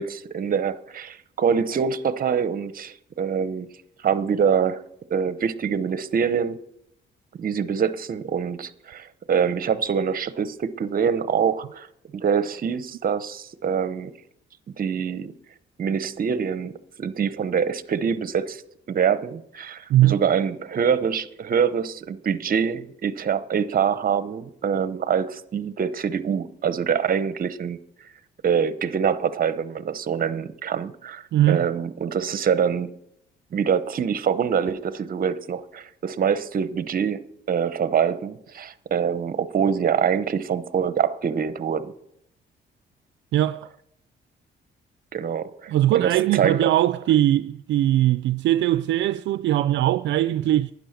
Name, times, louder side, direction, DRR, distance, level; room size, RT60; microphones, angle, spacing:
voice 1, 0.0-3.7 4.0-4.8 5.1-6.6 7.4-11.9 12.1-14.1 14.8-15.3 15.8-18.6 18.9-27.8 28.4-32.9 33.5-41.9 45.1-46.7, right 7 dB, 45° right, 0.8 m, -25 dB
voice 2, 31.3-31.7 43.3-43.7 45.7-50.7, right 13 dB, 70° right, 0.4 m, -20 dB
11.5 x 9.5 x 5.9 m
cardioid pair, 90°, 20 cm